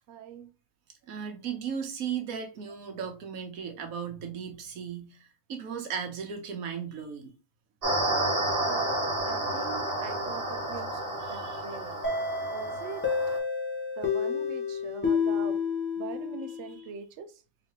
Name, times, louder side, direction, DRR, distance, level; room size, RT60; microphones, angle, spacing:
voice 1, 0.1-0.5 8.6-12.0 12.5-13.1 13.3-13.4 14.0-15.6 16.0-17.4, right 6 dB, 65° right, 0.8 m, -42 dB
voice 2, 1.1-7.3 11.3-11.6 15.0-15.2, right 7 dB, 85° right, 1.3 m, -36 dB
sound 1, 7.8-13.4, right 1 dB, 45° right, 1.4 m, -31 dB
sound 2, 12.0-16.7, left 5 dB, 10° left, 0.8 m, -30 dB
3.9 x 3.2 x 3.0 m
omnidirectional pair, 1.4 m